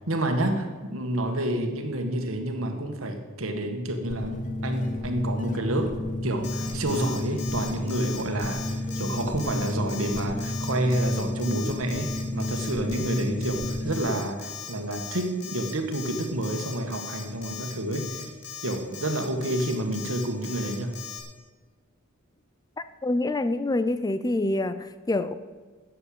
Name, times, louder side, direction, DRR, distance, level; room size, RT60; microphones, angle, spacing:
voice 1, 0.1-18.3 18.6-20.9, right 1 dB, 70° right, 5 dB, 1.8 m, -29 dB
sound 1, 4.1-14.0, left 1 dB, 35° left, 1.2 m, -32 dB
Alarm, 6.4-21.2, left 8 dB, 55° left, 2.8 m, -39 dB
voice 2, 23.0-25.3, left 2 dB, 20° left, 12 dB, 0.4 m, -26 dB
12.5 x 7.8 x 8.7 m, 1.4 s
head